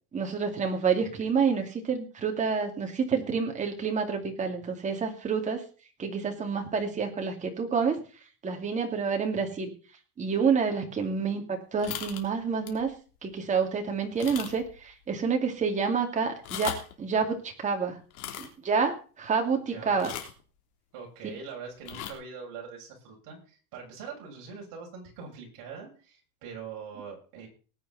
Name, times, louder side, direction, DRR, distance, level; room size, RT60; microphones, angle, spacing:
voice 1, 0.1-5.6 6.0-8.0 8.4-9.7 10.2-12.9 13.2-18.0 18.4-20.1, right 5 dB, 15° right, 3 dB, 2.4 m, -28 dB
sound 1, 11.8-12.2 12.7-12.8 13.3-13.4 14.2-14.8 15.0-15.1 16.3-16.9 18.1-18.5 20.0-20.4 21.8-22.1, left 11 dB, 65° left, 3.4 m, -37 dB
voice 2, 19.7-20.1 20.9-27.5, right 5 dB, 45° right, 0 dB, 7.1 m, -43 dB
19.5 x 8.9 x 4.1 m, 0.38 s
supercardioid pair, 160°, 45 cm